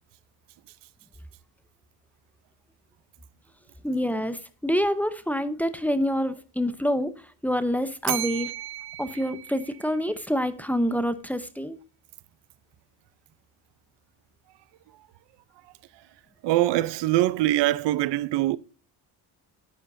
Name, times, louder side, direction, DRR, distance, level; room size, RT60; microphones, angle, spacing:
voice 1, 3.8-7.1 7.4-8.5 9.0-11.8, equal, 5° left, 0.6 m, -26 dB
Bell, 8.0-10.3, right 13 dB, 65° right, 0.9 m, -34 dB
voice 2, 16.4-18.6, right 15 dB, 85° right, 0.6 m, -23 dB
10.5 x 9.5 x 2.6 m
cardioid pair, 130°, 41 cm